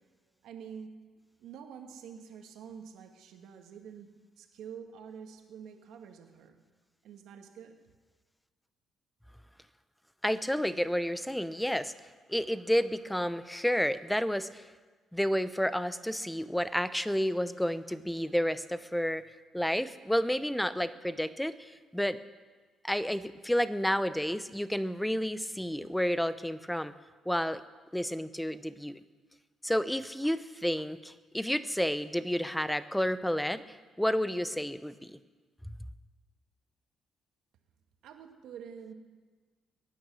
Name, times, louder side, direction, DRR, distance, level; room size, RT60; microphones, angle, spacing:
voice 1, 0.4-0.9 1.4-4.1 4.4-6.6 7.0-7.8 38.0-38.9, right 7 dB, 85° right, 5 dB, 1.7 m, -47 dB
voice 2, 10.2-11.9 12.3-14.7 15.1-19.2 19.5-22.2 22.8-26.9 27.3-27.6 27.9-29.0 29.6-33.6 34.0-35.2 35.7-35.8, equal, 5° left, 14 dB, 0.7 m, -30 dB
22.0 x 9.4 x 6.3 m, 1.4 s
cardioid pair, 90°, 0 cm